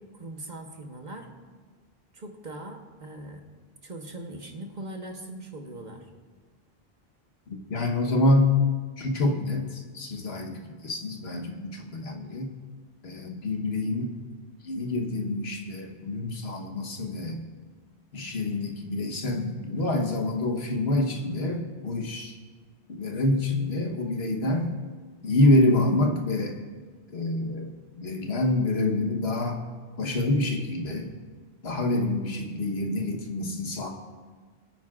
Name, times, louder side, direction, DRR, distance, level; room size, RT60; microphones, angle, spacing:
voice 1, 0.0-1.3 2.1-3.4 3.8-6.1, right 1 dB, 45° right, 3 dB, 1.2 m, -40 dB
voice 2, 7.5-8.6 9.0-12.5 13.0-14.1 14.6-17.4 18.1-22.3 22.9-24.7 25.2-26.6 27.1-29.6 30.0-31.1 31.6-33.9, left 2 dB, 70° left, 2 dB, 1.4 m, -26 dB
23.0 x 9.4 x 2.5 m, 1.5 s
omnidirectional pair, 1.1 m